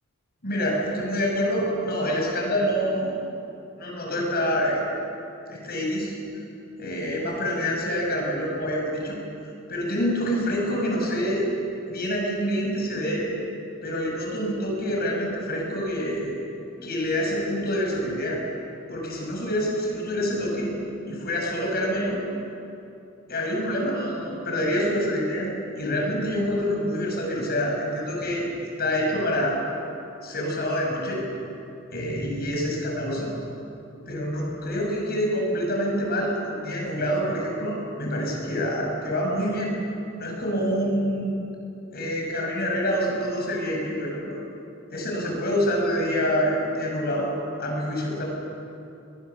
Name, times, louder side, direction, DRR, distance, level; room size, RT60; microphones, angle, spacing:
voice 1, 0.4-3.1 3.8-4.8 5.5-6.1 6.8-9.2 9.7-11.5 11.9-13.3 13.8-16.3 16.8-18.4 18.9-20.7 21.1-22.2 23.3-25.5 25.8-28.5 28.8-29.6 30.2-31.2 31.9-33.3 34.1-39.7 40.2-41.4 41.9-44.3 44.9-47.3 47.6-48.2, equal, 50° left, 0 dB, 6.6 m, -26 dB
23.0 x 20.5 x 7.2 m, 2.7 s
head